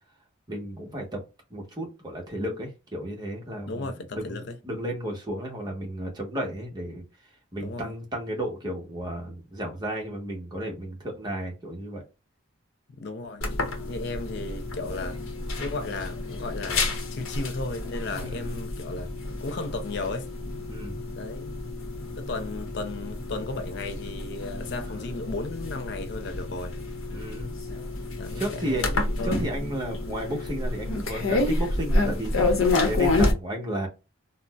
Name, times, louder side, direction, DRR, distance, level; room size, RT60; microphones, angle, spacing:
voice 1, 0.5-1.2 1.5-7.0 7.5-12.0 18.1-18.6 20.7-21.0 27.1-27.5 28.4-28.9 29.2-33.9, right 1 dB, 20° right, 0.9 m, -33 dB
voice 2, 3.7-4.6 7.6-7.9 13.0-13.4 13.9-15.2 15.6-19.1 19.4-20.3 21.2-21.6 22.1-26.7 28.2-29.3, left 3 dB, 55° left, 0.4 m, -35 dB
sound 1, 13.4-33.3, left 2 dB, 85° left, 0.8 m, -29 dB
3.8 x 2.1 x 2.2 m
head